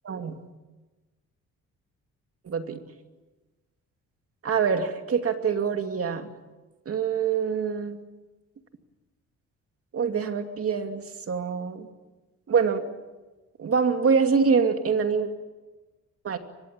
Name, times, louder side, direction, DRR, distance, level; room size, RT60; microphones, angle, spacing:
voice 1, 0.0-0.4 2.5-2.8 4.4-6.3 6.9-8.0 9.9-11.9 12.5-12.9 13.6-15.3 16.2-16.4, right 6 dB, 50° right, 6 dB, 2.7 m, -25 dB
24.0 x 21.5 x 8.9 m, 1.2 s
cardioid pair, 90°, 30 cm